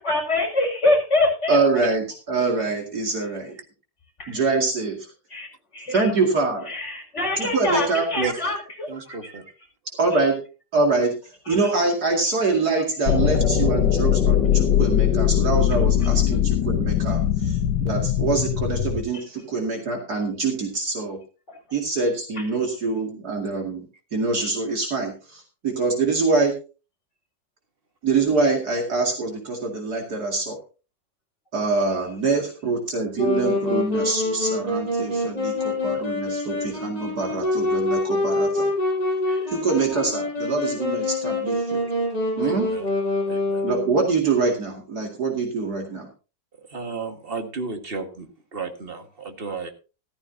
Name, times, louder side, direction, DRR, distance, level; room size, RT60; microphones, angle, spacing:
voice 1, 0.0-1.9 4.2-4.4 5.3-5.5 5.7-6.0 6.7-9.2 11.5-11.6 39.3-39.5, left 2 dB, 40° left, 0 dB, 5.5 m, -25 dB
voice 2, 1.5-3.6 4.3-5.1 5.9-6.7 7.4-8.1 10.0-10.4 10.7-21.2 21.7-23.8 24.1-26.5 28.0-30.6 31.5-38.7 39.5-41.8 42.4-42.7 43.6-46.1, right 3 dB, 65° right, 1 dB, 2.9 m, -24 dB
voice 3, 8.2-8.5 8.9-9.4 42.4-42.9 43.3-43.7 46.6-49.7, right 4 dB, 35° right, 5 dB, 2.0 m, -33 dB
sound 1, 13.1-19.0, left 10 dB, 90° left, 1.7 m, -21 dB
Wind instrument woodwind instrument, 33.2-44.1, left 2 dB, 20° left, 7.1 m, -25 dB
14.0 x 14.0 x 2.8 m, 0.33 s
omnidirectional pair, 1.8 m